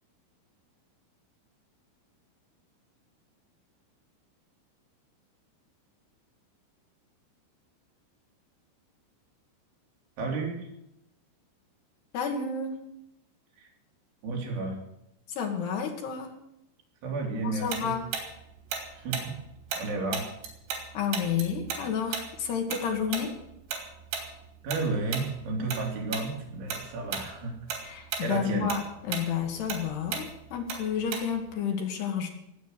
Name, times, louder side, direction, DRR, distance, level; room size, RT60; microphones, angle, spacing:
voice 1, 10.2-10.7 13.6-13.7 14.2-14.8 17.0-17.9 18.9-19.4 19.8-20.2 24.6-27.5 28.2-28.7, right 3 dB, 70° right, 0 dB, 5.6 m, -32 dB
voice 2, 12.1-12.8 15.3-16.3 17.4-18.1 20.9-23.3 27.8-32.3, left 7 dB, 65° left, 3 dB, 3.7 m, -30 dB
Tick-tock, 17.7-20.9 21.1-25.8 26.1-26.3 26.7-27.3 27.6-31.5, right 6 dB, 90° right, 5.7 m, -35 dB
20.0 x 8.5 x 8.0 m, 0.82 s
omnidirectional pair, 5.6 m